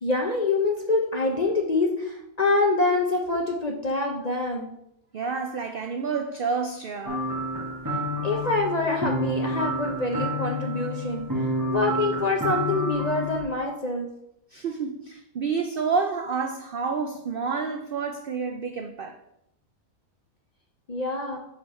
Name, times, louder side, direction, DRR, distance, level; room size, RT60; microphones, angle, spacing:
voice 1, 0.0-4.7 8.2-11.2 11.7-14.1 20.9-21.4, left 2 dB, 45° left, 1 dB, 0.5 m, -25 dB
voice 2, 5.1-7.3 14.5-19.2, right 5 dB, 85° right, 5 dB, 0.4 m, -29 dB
sound 1, 7.1-13.4, equal, 15° right, 0.9 m, -29 dB
5.5 x 4.2 x 5.5 m, 0.79 s
omnidirectional pair, 1.6 m